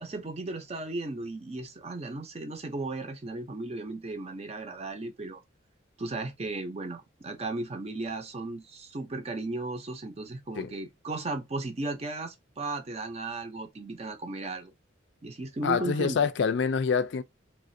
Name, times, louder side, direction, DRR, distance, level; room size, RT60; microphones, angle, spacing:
voice 1, 0.0-5.4 6.0-14.7 15.2-16.2, right 2 dB, 30° right, 0.6 m, -35 dB
voice 2, 15.6-17.2, left 5 dB, 60° left, 0.4 m, -26 dB
3.1 x 2.4 x 2.6 m
head